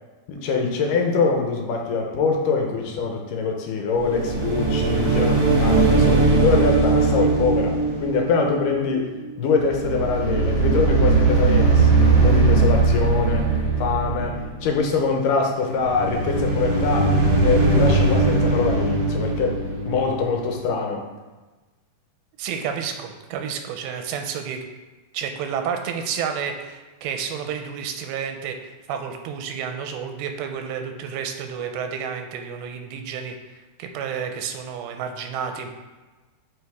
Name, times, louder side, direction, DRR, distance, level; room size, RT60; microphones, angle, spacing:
voice 1, 0.3-9.1 9.4-13.5 13.8-17.1 17.4-21.0, left 4 dB, 75° left, 1 dB, 2.1 m, -24 dB
sound 1, 4.0-9.3 9.6-14.8 15.8-20.6, right 3 dB, 50° right, 1.4 m, -20 dB
voice 2, 22.4-24.6 25.1-33.4 33.8-35.7, right 7 dB, 90° right, 5 dB, 2.5 m, -30 dB
6.8 x 6.2 x 3.5 m, 1.2 s
omnidirectional pair, 4.4 m